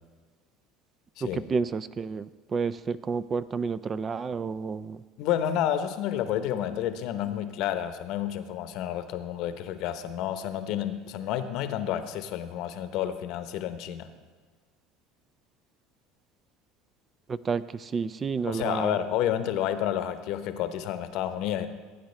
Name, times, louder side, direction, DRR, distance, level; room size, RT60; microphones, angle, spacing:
voice 1, 1.2-5.0 17.3-19.0, right 5 dB, 30° right, 16 dB, 0.3 m, -30 dB
voice 2, 5.2-14.1 18.5-21.7, left 10 dB, 65° left, 10 dB, 0.8 m, -30 dB
16.5 x 8.9 x 3.2 m, 1.4 s
supercardioid pair, 110°, 0 cm